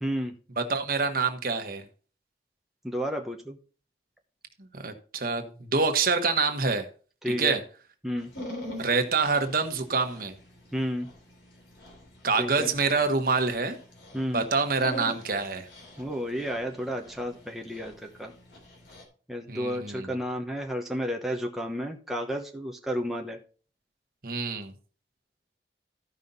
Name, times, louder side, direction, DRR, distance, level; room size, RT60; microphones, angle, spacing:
voice 1, 0.0-0.3 2.8-3.6 7.2-7.6 8.0-8.3 10.7-11.1 12.4-12.7 14.1-14.4 16.0-18.3 19.3-23.4, equal, ahead, 1 dB, 1.0 m, -32 dB
voice 2, 0.6-1.8 4.7-6.8 7.3-7.6 8.8-10.3 12.2-13.8 14.3-15.7 19.5-20.1 24.2-24.7, right 4 dB, 55° right, 6 dB, 1.3 m, -26 dB
Dog, 8.2-19.0, equal, 85° left, 3.3 m, -44 dB
14.0 x 5.6 x 4.0 m, 0.39 s
head